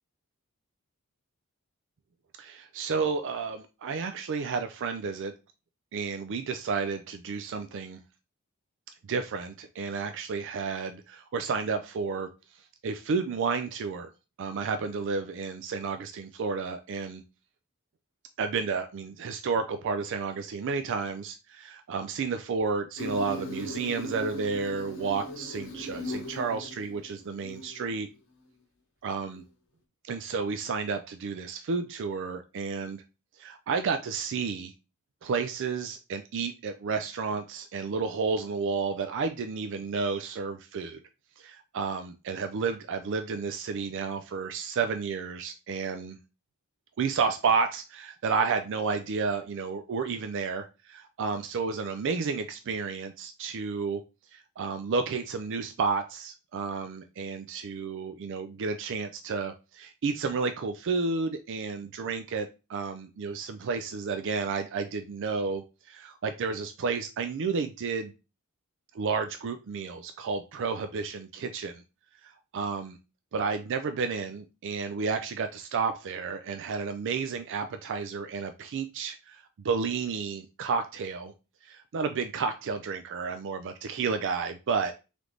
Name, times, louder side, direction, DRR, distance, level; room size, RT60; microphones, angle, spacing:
voice 1, 2.4-5.3 5.9-8.0 9.1-12.3 12.8-14.1 14.4-17.2 18.4-28.1 29.0-29.4 30.0-33.0 33.4-34.7 35.2-41.0 41.4-46.2 47.0-54.0 54.3-68.1 68.9-71.8 72.2-73.0 73.3-81.3 81.6-84.9, right 5 dB, 55° right, 8 dB, 0.4 m, -31 dB
Insect, 23.0-27.9, left 1 dB, 60° left, 1.1 m, -38 dB
3.8 x 3.3 x 3.1 m, 0.30 s
head